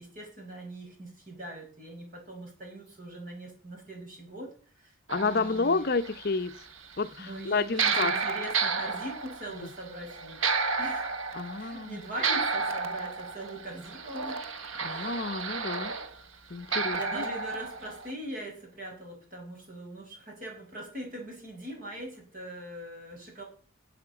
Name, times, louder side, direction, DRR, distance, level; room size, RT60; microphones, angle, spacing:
voice 1, 0.0-4.9 5.2-5.9 7.2-10.4 10.8-11.1 11.6-14.4 14.9-15.3 16.9-23.4, right 1 dB, 45° right, 5.7 m, -41 dB
voice 2, 5.1-6.5 7.0-8.1 11.3-12.0 14.8-15.9 16.5-17.3, left 4 dB, 50° left, 0.7 m, -30 dB
sound 1, 5.1-7.1 7.4-16.2 16.7-18.1, right 4 dB, 90° right, 1.0 m, -32 dB
10.0 x 7.7 x 8.2 m
head